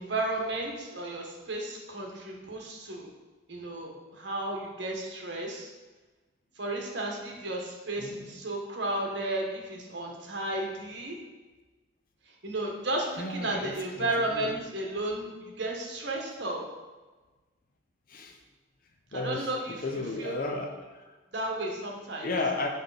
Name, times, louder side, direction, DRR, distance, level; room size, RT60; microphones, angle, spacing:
voice 1, 0.0-3.1 3.5-5.7 6.6-11.2 12.4-16.6 19.1-20.3 21.3-22.3, right 2 dB, 60° right, 0 dB, 1.3 m, -33 dB
voice 2, 8.0-8.3 13.2-14.1 14.3-14.5 18.1-18.4 19.1-19.5 19.8-21.0 22.2-22.7, left 2 dB, 45° left, 4 dB, 0.7 m, -33 dB
6.7 x 5.3 x 4.0 m, 1.3 s
head